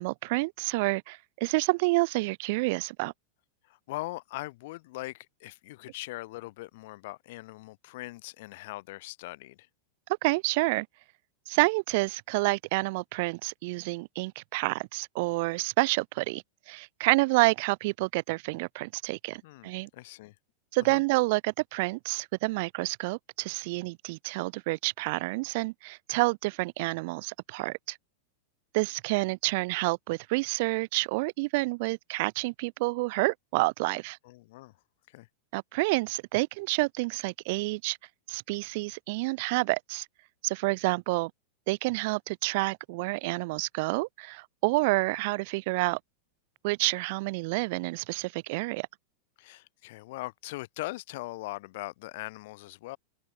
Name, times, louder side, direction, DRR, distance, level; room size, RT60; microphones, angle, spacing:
voice 1, 0.0-3.1 10.2-10.9 11.5-19.9 20.7-28.0 28.7-34.2 35.5-38.0 38.3-40.1 40.4-41.3 41.7-46.0 46.6-48.9, right 25 dB, 55° right, 0.9 m, -29 dB
voice 2, 3.6-9.7 19.4-20.3 20.8-21.0 34.2-34.7 35.1-35.3 49.4-53.0, left 20 dB, 60° left, 1.9 m, -41 dB
open air
supercardioid pair, 135°, 0 cm